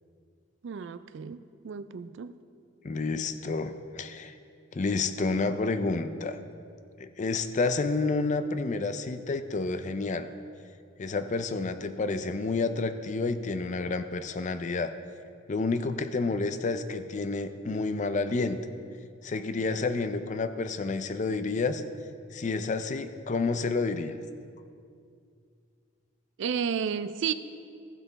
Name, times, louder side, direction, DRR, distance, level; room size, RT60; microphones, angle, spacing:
voice 1, 0.6-2.3 26.4-27.3, right 7 dB, 60° right, 13 dB, 0.3 m, -32 dB
voice 2, 2.8-4.4 4.7-6.4 7.0-10.3 11.0-14.9 15.5-18.6 19.2-21.8 22.3-24.2, left 3 dB, 35° left, 10 dB, 0.4 m, -29 dB
15.0 x 5.8 x 4.0 m, 2.3 s
head